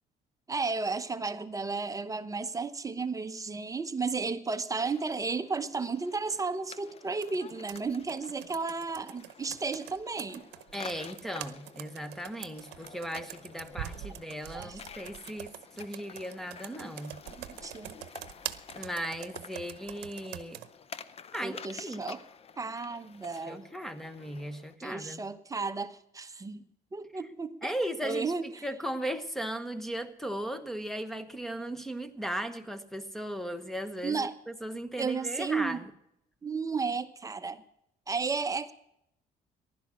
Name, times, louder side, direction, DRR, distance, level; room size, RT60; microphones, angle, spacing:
voice 1, 0.5-10.4 14.5-14.8 16.8-16.9 17.4-18.0 21.4-22.2 22.6-23.7 24.8-27.7 28.0-28.7 34.0-34.3 35.0-35.8 36.4-37.6 38.1-38.7, right 4 dB, 20° right, 10 dB, 0.9 m, -33 dB
sound 1, 4.9-24.8, left 6 dB, 35° left, 0.7 m, -50 dB
Computer keyboard, 7.2-20.7, right 14 dB, 80° right, 0.8 m, -45 dB
voice 2, 10.7-15.5 15.8-17.2 18.7-20.6 21.3-22.0 23.5-25.2 27.6-28.3 28.6-35.8, equal, ahead, 11 dB, 1.2 m, -37 dB
15.0 x 11.5 x 6.3 m, 0.77 s
cardioid pair, 110°, 17 cm